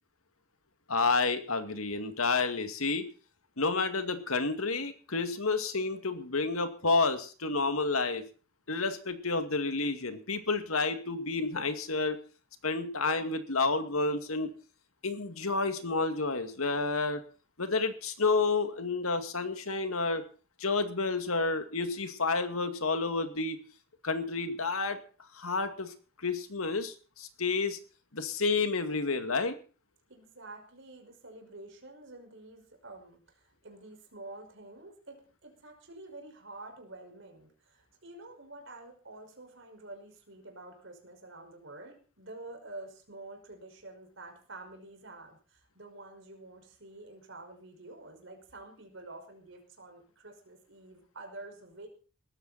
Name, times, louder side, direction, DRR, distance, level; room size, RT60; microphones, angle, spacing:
voice 1, 0.9-3.1 3.6-8.2 8.7-12.2 12.6-14.5 15.0-17.2 17.6-20.2 20.6-23.6 24.0-25.0 25.3-25.9 26.2-27.8 28.1-29.6, left 3 dB, 90° left, 8 dB, 2.3 m, -30 dB
voice 2, 30.1-51.9, right 2 dB, 60° right, 4 dB, 5.5 m, -48 dB
19.0 x 14.5 x 4.3 m, 0.38 s
head